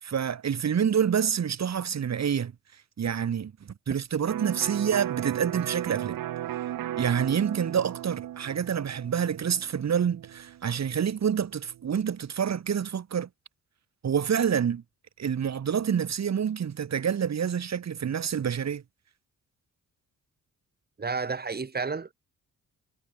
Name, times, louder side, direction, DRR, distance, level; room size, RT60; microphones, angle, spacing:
voice 1, 0.0-2.5 3.0-3.5 3.9-6.2 7.0-13.3 14.0-14.8 15.2-18.8, right 8 dB, 50° right, 3.2 m, -27 dB
Electric guitar, 4.3-11.9, right 12 dB, 85° right, 3.2 m, -36 dB
voice 2, 21.0-22.1, right 4 dB, 30° right, 3.3 m, -31 dB
cardioid pair, 100°, 33 cm